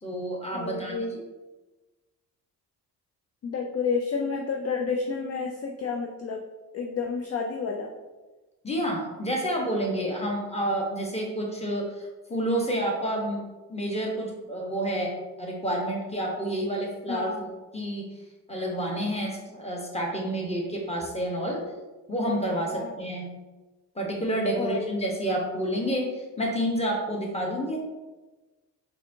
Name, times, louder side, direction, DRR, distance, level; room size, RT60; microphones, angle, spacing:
voice 1, 0.0-1.2 8.6-13.4 13.7-18.1 18.5-21.6 22.1-23.3 23.9-27.8, right 1 dB, 15° left, -1 dB, 1.1 m, -29 dB
voice 2, 0.5-1.2 3.4-6.4 6.7-7.9 17.1-17.4 22.7-22.9 24.5-24.9, left 5 dB, 35° left, 2 dB, 0.4 m, -30 dB
4.0 x 2.7 x 2.7 m, 1.2 s
hypercardioid pair, 40°, 47 cm